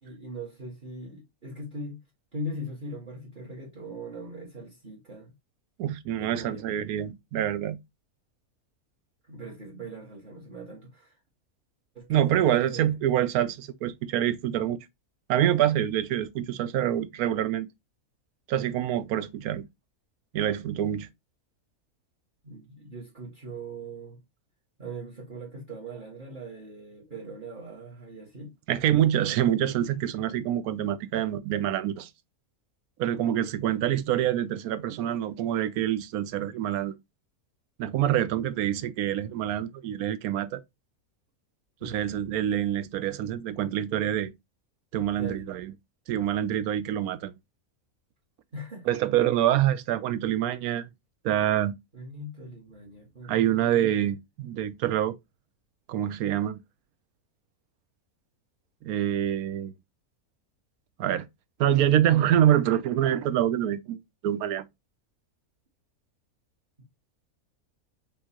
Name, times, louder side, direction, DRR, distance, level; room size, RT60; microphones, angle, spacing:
voice 1, 0.0-2.0 2.3-5.3 6.2-6.7 9.2-11.2 11.9-13.0 22.4-24.2 24.8-28.5 41.8-42.0 45.1-45.5 48.5-48.9 51.9-54.1, right 1 dB, 35° right, 1.5 m, -40 dB
voice 2, 5.8-7.8 12.1-14.8 15.3-17.7 18.5-19.6 20.3-21.1 28.7-32.1 33.0-36.9 37.8-40.6 41.8-44.3 44.9-45.7 46.1-47.3 48.9-50.9 51.2-51.7 53.2-55.1 55.9-56.6 58.8-59.7 61.0-61.3 61.6-64.6, right 11 dB, 80° right, 1.1 m, -26 dB
5.3 x 3.1 x 2.8 m
omnidirectional pair, 1.5 m